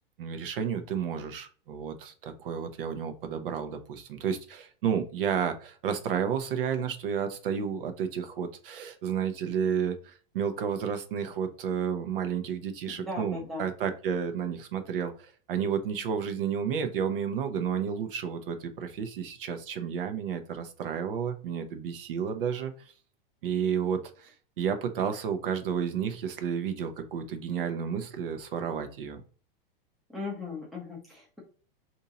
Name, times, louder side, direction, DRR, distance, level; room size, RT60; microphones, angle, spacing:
voice 1, 0.2-22.9 23.4-29.2, right 7 dB, 65° right, 8 dB, 0.7 m, -31 dB
voice 2, 13.0-13.6 30.1-31.4, left 3 dB, ahead, -4 dB, 0.5 m, -37 dB
2.8 x 2.7 x 3.8 m, 0.40 s
supercardioid pair, 170°, 29 cm